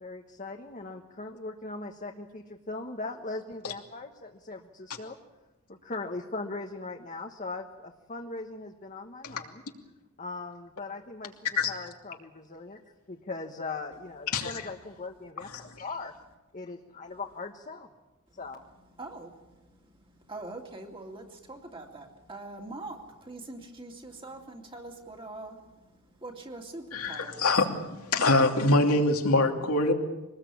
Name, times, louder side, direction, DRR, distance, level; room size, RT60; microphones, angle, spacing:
voice 1, 0.0-5.2 5.7-9.6 10.2-11.4 11.6-12.8 13.1-16.1 16.5-17.9 18.4-18.6, left 3 dB, 35° left, 3 dB, 1.3 m, -39 dB
voice 2, 19.0-19.8 20.0-27.5, right 2 dB, 25° right, 2 dB, 2.7 m, -43 dB
voice 3, 26.9-27.7 28.1-29.9, left 2 dB, 85° left, 3 dB, 2.8 m, -23 dB
24.0 x 19.5 x 8.6 m, 1.1 s
head